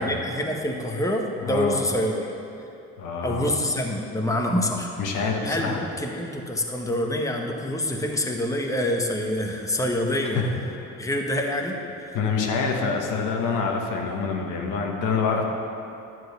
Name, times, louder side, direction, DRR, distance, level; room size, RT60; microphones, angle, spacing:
voice 1, 0.0-2.3 3.2-4.9 5.4-10.4 11.0-12.2, left 1 dB, 10° left, 1 dB, 1.1 m, -26 dB
voice 2, 1.4-1.8 3.0-3.6 5.0-5.9 10.3-10.5 10.7-10.9 12.1-15.4, left 5 dB, 85° left, 1 dB, 1.3 m, -26 dB
11.0 x 4.6 x 8.1 m, 2.8 s
cardioid pair, 90°, 30 cm